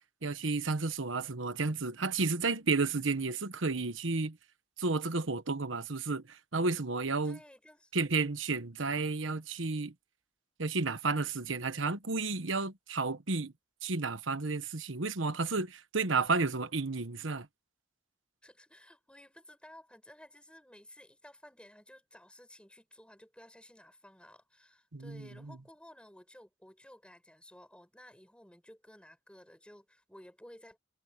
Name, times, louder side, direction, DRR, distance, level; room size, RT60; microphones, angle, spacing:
voice 1, 0.2-4.4 4.8-7.4 7.9-9.9 10.6-13.5 13.8-17.5 24.9-25.6, right 3 dB, 80° right, 1.3 m, -32 dB
voice 2, 7.2-7.9 18.4-30.8, left 1 dB, 5° left, 6.6 m, -55 dB
head